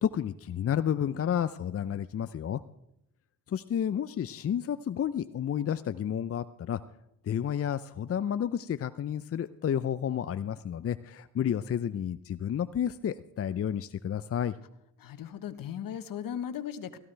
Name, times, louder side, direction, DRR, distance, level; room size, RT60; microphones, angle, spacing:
voice 1, 0.0-2.6 3.5-6.8 7.2-14.5, left 9 dB, 40° left, 13 dB, 0.6 m, -31 dB
voice 2, 15.0-17.0, left 9 dB, 60° left, 11 dB, 1.3 m, -37 dB
17.5 x 15.0 x 3.4 m, 0.78 s
supercardioid pair, 55°, 38 cm